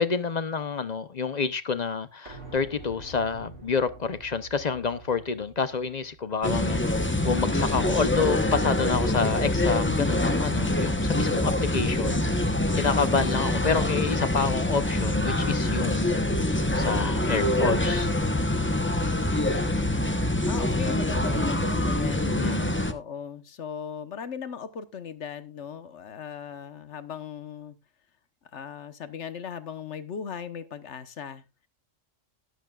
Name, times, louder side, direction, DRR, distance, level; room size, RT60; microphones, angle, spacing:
voice 1, 0.0-18.1 22.2-22.8, left 5 dB, 40° left, 0.7 m, -28 dB
sound 1, 2.3-7.9 8.2-8.3, right 3 dB, 60° right, 4.3 m, -47 dB
sound 2, 6.4-22.9, left 1 dB, 10° left, 0.8 m, -25 dB
voice 2, 20.5-22.4 22.9-27.8 28.5-31.4, left 7 dB, 65° left, 1.3 m, -38 dB
13.0 x 11.5 x 2.4 m
omnidirectional pair, 1.3 m